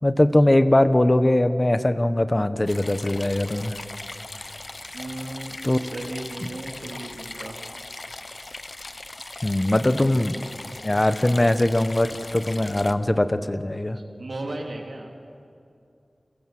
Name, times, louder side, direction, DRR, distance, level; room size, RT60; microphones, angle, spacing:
voice 1, 0.0-3.8 5.6-5.8 9.4-10.4 10.8-14.0, left 1 dB, 30° left, 10 dB, 1.3 m, -21 dB
sound 1, 2.7-12.9, left 2 dB, 45° left, 1.0 m, -39 dB
voice 2, 4.9-7.7 13.9-15.1, right 2 dB, 80° right, 1 dB, 3.2 m, -36 dB
29.0 x 24.0 x 7.7 m, 2.5 s
wide cardioid pair, 55°, 0 cm